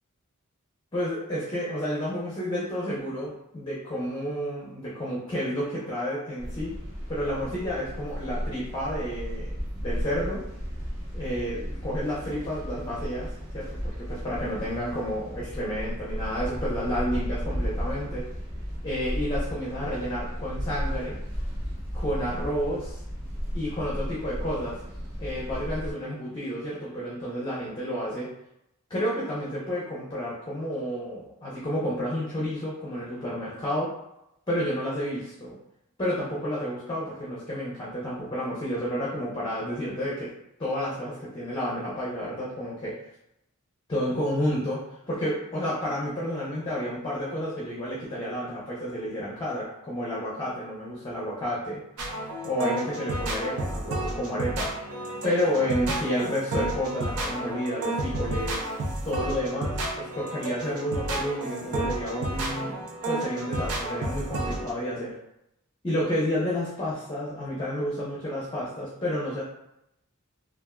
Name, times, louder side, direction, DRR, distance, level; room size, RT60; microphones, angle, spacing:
voice 1, 0.9-6.7 7.1-9.5 9.8-10.4 11.1-18.3 18.8-21.2 21.9-23.0 23.5-24.8 25.2-28.3 28.9-33.9 34.5-35.6 36.0-40.3 40.6-43.0 43.9-51.8 52.4-58.7 59.0-65.1 65.8-69.4, equal, 20° left, -6 dB, 0.6 m, -30 dB
sound 1, 6.4-25.9, equal, 40° right, 0.9 m, -34 dB
sound 2, 52.0-64.7, right 1 dB, 85° right, 0.5 m, -31 dB
3.3 x 2.4 x 2.2 m, 0.82 s
head